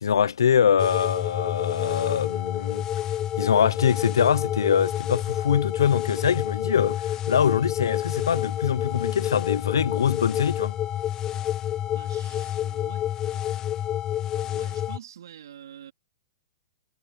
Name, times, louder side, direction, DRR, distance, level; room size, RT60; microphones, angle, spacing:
voice 1, 0.0-2.9 3.4-10.7, left 8 dB, 85° left, 0.8 m, -23 dB
sound 1, 0.8-15.0, left 11 dB, 25° left, 0.6 m, -29 dB
voice 2, 11.9-13.1 14.4-15.9, right 10 dB, 75° right, 3.7 m, -46 dB
hypercardioid pair, 125°, 2 cm